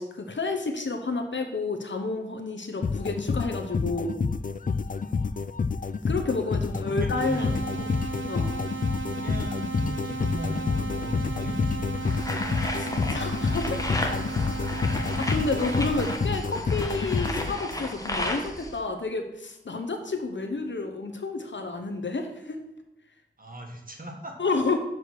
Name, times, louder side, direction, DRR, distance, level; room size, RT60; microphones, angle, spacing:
voice 1, 0.0-4.2 6.1-7.6 8.3-8.5 12.8-13.9 15.2-22.6 24.4-24.8, left 3 dB, 75° left, 5 dB, 0.8 m, -30 dB
sound 1, 2.8-18.1, left 4 dB, 45° left, 0.4 m, -29 dB
voice 2, 5.1-5.5 6.6-8.1 9.0-12.0 14.3-15.2 23.4-24.5, right 1 dB, 45° right, 2 dB, 1.5 m, -38 dB
sound 2, 7.2-16.2, right 3 dB, 90° right, 1.0 m, -35 dB
sound 3, 12.1-18.8, left 1 dB, 20° left, 1.1 m, -34 dB
6.6 x 4.9 x 6.2 m, 0.88 s
wide cardioid pair, 60°, 19 cm